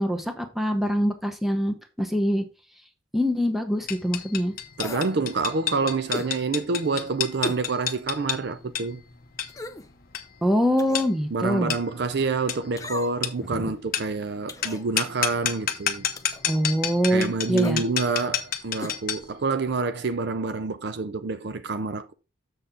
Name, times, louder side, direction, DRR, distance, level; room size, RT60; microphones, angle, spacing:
voice 1, 0.0-2.4 3.1-4.5 10.4-11.7 13.6-13.7 16.5-17.8, equal, ahead, 0.9 m, -24 dB
sound 1, 3.9-19.3, left 9 dB, 45° left, 0.9 m, -31 dB
sound 2, 4.8-5.2 6.1-6.3 7.4-7.7 8.1-8.2 9.5-9.9 10.8-11.1 12.8-13.3 14.5-14.9 16.2-16.4 17.6-17.8 18.8-19.0 19.2-19.3, left 2 dB, 15° left, 0.5 m, -36 dB
voice 2, 4.8-9.0 11.3-16.1 17.1-22.1, right 4 dB, 55° right, 0.5 m, -27 dB
7.0 x 6.4 x 3.7 m
head